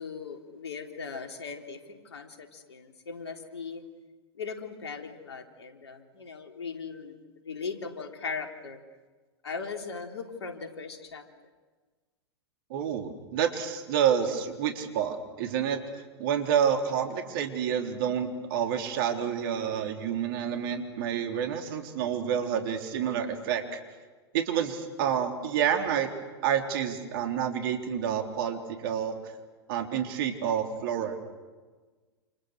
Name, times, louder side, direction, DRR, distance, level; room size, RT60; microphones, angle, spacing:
voice 1, 0.0-3.8 4.4-7.2 7.4-8.8 9.4-11.3, left 5 dB, 75° left, 4 dB, 3.6 m, -39 dB
voice 2, 12.7-15.8 16.2-23.8 24.3-26.1 26.4-29.2 29.7-31.3, right 8 dB, 55° right, 4 dB, 3.8 m, -28 dB
29.0 x 28.5 x 6.5 m, 1.3 s
hypercardioid pair, 100°, 14 cm